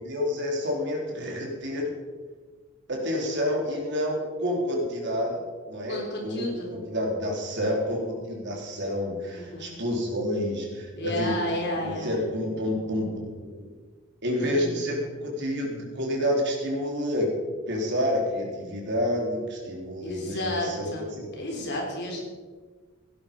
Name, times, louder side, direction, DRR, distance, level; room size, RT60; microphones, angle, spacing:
voice 1, 0.0-1.9 2.9-11.4 11.8-13.7 14.2-17.3 17.7-21.3, left 1 dB, 55° right, -1 dB, 3.9 m, -29 dB
voice 2, 5.9-6.7 9.3-9.7 10.9-12.2 14.4-14.7 20.0-22.2, left 1 dB, 55° left, 0 dB, 4.1 m, -32 dB
17.0 x 11.0 x 5.4 m, 1.5 s
head